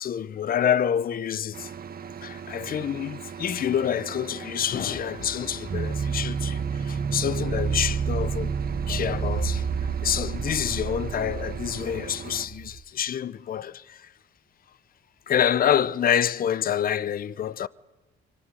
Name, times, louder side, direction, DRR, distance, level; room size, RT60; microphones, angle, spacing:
voice 1, 0.0-1.7 2.2-8.5 8.9-14.1 15.3-17.7, left 9 dB, 45° left, 0.7 m, -27 dB
sound 1, 1.5-12.5, right 7 dB, 50° right, 1.3 m, -40 dB
sound 2, 5.7-12.8, right 6 dB, 35° right, 1.0 m, -29 dB
24.0 x 16.5 x 9.8 m
cardioid pair, 90°, 20 cm